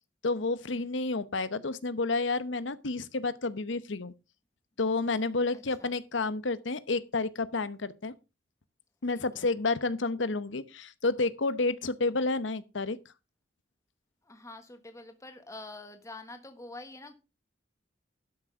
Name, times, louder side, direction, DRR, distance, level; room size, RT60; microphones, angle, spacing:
voice 1, 0.2-4.1 4.8-8.1 9.0-13.0, left 3 dB, 80° left, 0.9 m, -30 dB
voice 2, 5.5-5.9 9.1-9.5 14.2-17.1, left 2 dB, 15° left, 1.3 m, -46 dB
12.0 x 6.3 x 5.2 m
head